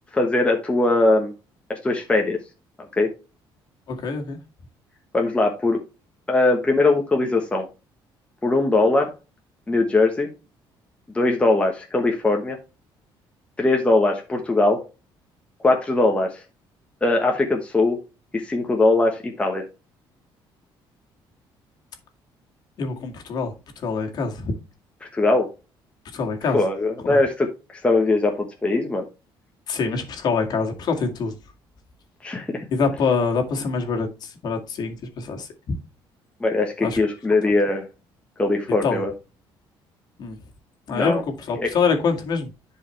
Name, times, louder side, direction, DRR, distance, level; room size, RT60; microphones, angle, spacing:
voice 1, 0.1-1.3 1.7-2.4 3.0-3.1 5.1-5.8 6.3-7.7 8.4-9.1 9.7-10.3 11.1-12.6 13.6-14.8 15.6-16.4 17.0-18.0 18.3-19.6 25.1-25.5 26.5-29.0 32.2-32.6 36.4-37.8 38.4-39.1 40.9-41.2 41.6-41.7, left 2 dB, 15° left, 1.2 m, -20 dB
voice 2, 3.9-4.4 22.8-24.5 26.1-26.6 27.0-27.2 29.7-31.3 32.7-35.5 36.8-37.0 38.8-39.0 40.2-40.4 40.9-42.5, left 5 dB, 50° left, 2.0 m, -25 dB
11.0 x 4.9 x 3.2 m
cardioid pair, 160°, 9 cm